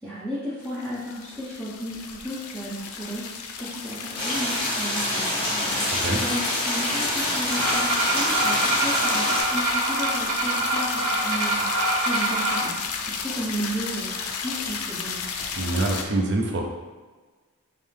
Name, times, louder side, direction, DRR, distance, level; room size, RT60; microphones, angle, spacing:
voice 1, 0.0-14.1 14.4-15.2, equal, 10° right, -13 dB, 0.9 m, -34 dB
sound 1, 0.6-16.0, left 6 dB, 85° left, 0.4 m, -33 dB
sound 2, 4.2-9.4, left 1 dB, 25° left, 1.0 m, -27 dB
sound 3, 7.5-12.7, right 2 dB, 90° right, 0.9 m, -25 dB
voice 2, 15.6-16.6, right 2 dB, 50° right, 1 dB, 0.5 m, -24 dB
5.3 x 2.1 x 3.2 m, 1.4 s
head